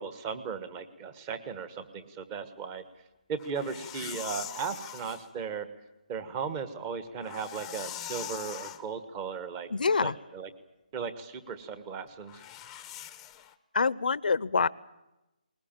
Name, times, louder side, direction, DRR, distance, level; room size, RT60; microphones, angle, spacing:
voice 1, 0.0-2.8 3.3-5.7 6.1-9.7 10.0-10.5 10.9-12.4, right 6 dB, 15° right, 12 dB, 1.3 m, -36 dB
sound 1, 3.4-5.3 7.1-8.8 12.3-13.5, left 11 dB, 10° left, 0.8 m, -42 dB
voice 2, 9.7-10.1 13.7-14.7, left 4 dB, 75° left, 19 dB, 0.8 m, -26 dB
20.5 x 20.0 x 9.0 m, 0.97 s
hypercardioid pair, 165°, 5 cm